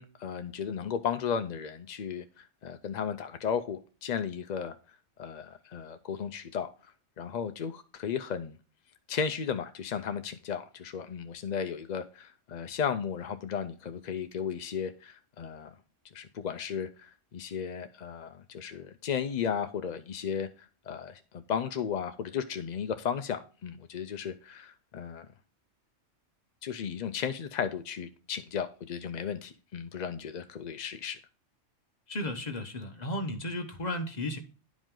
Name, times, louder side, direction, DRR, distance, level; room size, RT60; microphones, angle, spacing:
voice 1, 0.0-4.8 5.2-6.7 7.2-8.6 9.1-15.7 16.1-20.5 20.9-25.3 26.6-31.2, left 7 dB, 55° left, 0.5 m, -35 dB
voice 2, 32.1-34.4, left 1 dB, 35° left, 1.1 m, -34 dB
10.5 x 5.1 x 3.7 m
omnidirectional pair, 1.3 m